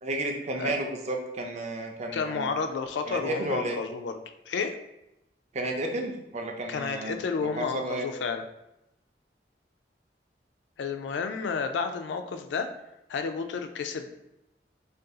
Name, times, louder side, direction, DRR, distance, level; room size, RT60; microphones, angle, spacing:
voice 1, 0.0-2.5 3.1-3.8 5.5-8.1, right 2 dB, 40° right, 2 dB, 0.4 m, -32 dB
voice 2, 2.1-4.2 4.5-4.8 6.7-8.4 10.8-12.7 13.1-14.1, left 5 dB, 85° left, 7 dB, 0.3 m, -31 dB
2.5 x 2.3 x 3.7 m, 0.88 s
head